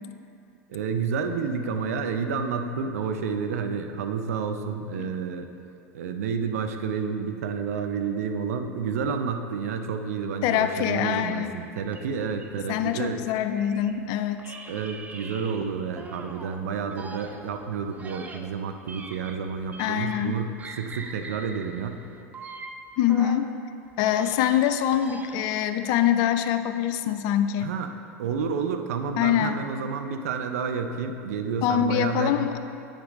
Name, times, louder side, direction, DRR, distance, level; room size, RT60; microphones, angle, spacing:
voice 1, 0.7-5.5 5.9-13.2 14.7-22.0 27.6-27.9 28.2-32.5, right 6 dB, 75° right, 7 dB, 0.5 m, -30 dB
voice 2, 10.4-11.5 12.7-14.4 19.8-20.4 23.0-23.5 24.0-27.7 29.2-29.6 31.6-32.5, left 10 dB, 55° left, 10 dB, 0.4 m, -24 dB
sound 1, 11.9-14.0 14.4-16.6 16.9-20.3 20.6-23.5 23.9-25.6, right 3 dB, 20° right, 0.5 m, -43 dB
8.9 x 5.1 x 3.1 m, 2.5 s
hypercardioid pair, 85°, 8 cm